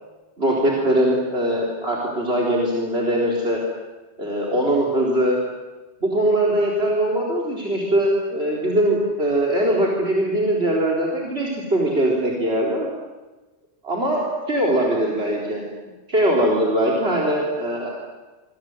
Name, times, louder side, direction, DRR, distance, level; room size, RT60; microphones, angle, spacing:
voice 1, 0.4-3.6 4.2-5.4 6.0-12.9 13.8-15.6 16.1-17.9, right 1 dB, 70° right, -1 dB, 4.2 m, -21 dB
28.0 x 24.0 x 7.9 m, 1.2 s
omnidirectional pair, 1.1 m